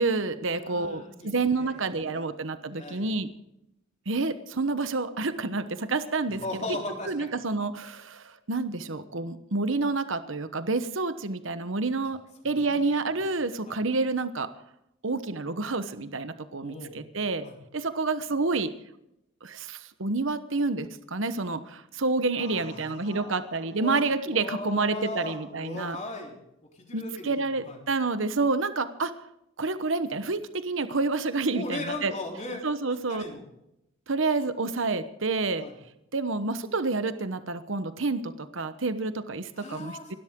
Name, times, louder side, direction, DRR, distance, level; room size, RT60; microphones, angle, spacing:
voice 1, 0.0-3.3 4.1-6.4 7.1-12.2 12.4-14.5 15.0-17.5 17.7-18.7 19.4-26.0 26.9-29.1 29.6-32.1 32.6-33.2 34.1-35.7 36.1-40.1, right 3 dB, 65° right, 11 dB, 1.1 m, -29 dB
voice 2, 0.5-2.4 2.7-3.1 6.3-7.3 12.5-12.8 13.7-13.8 16.6-16.9 17.4-17.6 22.4-24.0 24.2-26.4 26.7-27.8 31.5-32.6 33.1-33.4 35.6-35.7 39.6-40.1, left 2 dB, 35° left, 1 dB, 3.6 m, -38 dB
28.0 x 12.5 x 3.8 m, 0.82 s
head